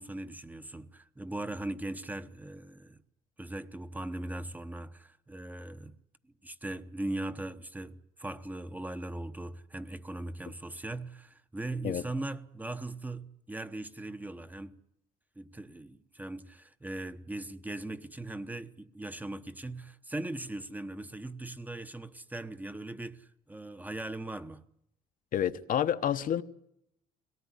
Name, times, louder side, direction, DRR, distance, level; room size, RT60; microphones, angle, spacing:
voice 1, 0.0-3.0 3.4-5.9 6.4-14.8 15.4-24.6, right 2 dB, 10° right, 1.0 m, -39 dB
voice 2, 25.3-26.4, left 10 dB, 55° left, 1.0 m, -29 dB
22.0 x 18.0 x 9.8 m
cardioid pair, 110°, 17 cm